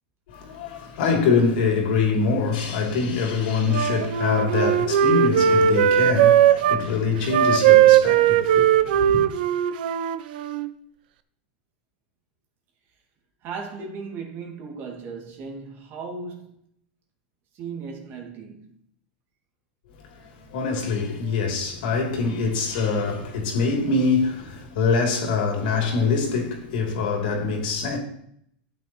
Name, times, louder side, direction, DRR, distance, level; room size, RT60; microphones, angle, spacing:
voice 1, 0.3-9.2 20.1-28.0, left 4 dB, 70° left, 3.1 m, -24 dB
Wind instrument woodwind instrument, 3.7-6.8 7.2-10.7, right 9 dB, 70° right, 0.7 m, -18 dB
voice 2, 13.4-16.6 17.5-18.7, right 4 dB, 45° right, 2.4 m, -36 dB
13.0 x 9.2 x 3.1 m
hypercardioid pair, 115°, 5 cm